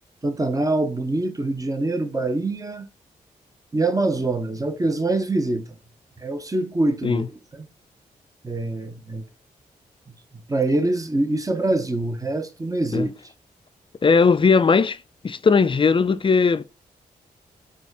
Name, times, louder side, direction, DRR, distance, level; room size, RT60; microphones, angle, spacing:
voice 1, 0.2-2.9 3.7-5.6 6.2-7.7 8.4-9.2 10.5-13.1, right 2 dB, 20° right, 0.8 m, -24 dB
voice 2, 14.0-15.0 15.2-16.6, left 5 dB, 30° left, 0.4 m, -18 dB
4.1 x 2.4 x 4.6 m
supercardioid pair, 40°, 17 cm